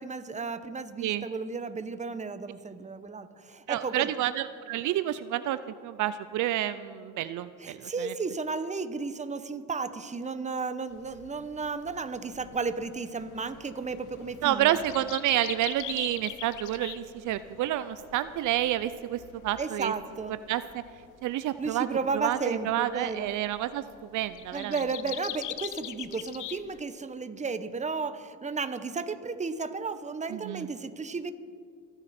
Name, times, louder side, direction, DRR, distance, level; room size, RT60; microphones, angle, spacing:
voice 1, 0.0-4.1 7.6-14.7 19.6-20.3 21.6-23.3 24.5-31.3, right 4 dB, 25° right, 11 dB, 0.9 m, -33 dB
voice 2, 3.7-8.1 14.4-19.9 20.5-20.8 21.2-21.9 22.1-24.8 30.3-30.7, right 13 dB, 80° right, 14 dB, 0.5 m, -29 dB
sound 1, 10.9-26.8, left 14 dB, 90° left, 0.6 m, -44 dB
27.5 x 10.0 x 4.3 m, 2.2 s
cardioid pair, 90°, 30 cm